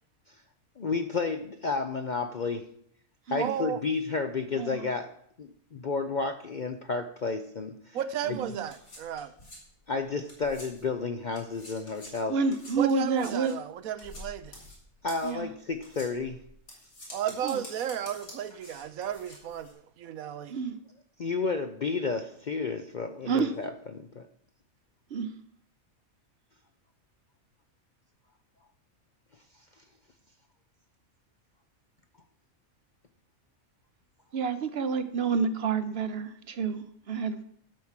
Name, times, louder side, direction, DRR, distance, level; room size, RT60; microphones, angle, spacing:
voice 1, 0.8-2.7 3.3-5.1 5.4-8.0 8.3-8.4 9.9-12.4 15.0-16.4 21.2-24.3, left 4 dB, 50° left, 0.5 m, -31 dB
voice 2, 3.4-3.8 7.9-9.3 12.8-14.6 17.1-20.6, right 9 dB, 80° right, 1.1 m, -34 dB
sound 1, 8.2-11.0 11.3-19.7, left 1 dB, 80° left, 3.8 m, -48 dB
voice 3, 8.3-8.7 12.3-13.6 15.2-15.5 17.4-17.6 20.5-20.8 23.2-23.5 25.1-25.3 34.3-37.4, right 5 dB, 55° right, 0.8 m, -29 dB
12.0 x 4.7 x 7.3 m
omnidirectional pair, 1.5 m